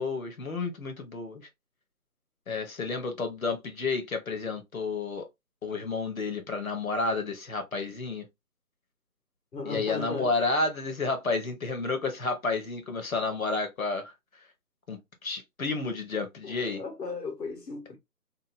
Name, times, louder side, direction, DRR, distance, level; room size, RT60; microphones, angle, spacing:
voice 1, 0.0-1.5 2.5-5.3 5.6-8.3 9.7-14.1 14.9-16.8, left 3 dB, 60° left, 0.9 m, -31 dB
voice 2, 9.5-10.3 16.4-18.0, left 4 dB, 85° left, 1.2 m, -36 dB
2.8 x 2.3 x 2.4 m
figure-of-eight pair, 165°, 48 cm